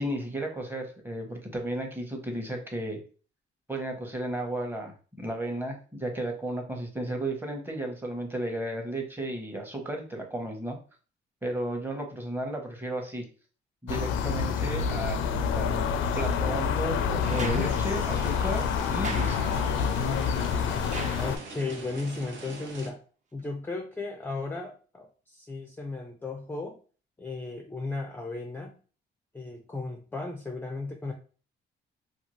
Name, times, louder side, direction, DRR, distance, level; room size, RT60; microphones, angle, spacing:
voice 1, 0.0-3.0 3.7-10.8 11.4-13.2 13.8-19.6, right 1 dB, 10° right, 2 dB, 0.8 m, -34 dB
sound 1, 13.9-21.4, left 6 dB, 80° left, 0.4 m, -27 dB
sound 2, 17.2-21.8 23.4-23.5, right 3 dB, 40° right, 0.5 m, -42 dB
sound 3, 17.6-22.9, right 3 dB, 70° right, 0.8 m, -43 dB
voice 2, 21.2-23.0 23.3-26.8 27.2-28.8 29.3-31.1, left 3 dB, 10° left, 3 dB, 0.4 m, -35 dB
2.5 x 2.3 x 3.0 m, 0.38 s
cardioid pair, 90°, 20 cm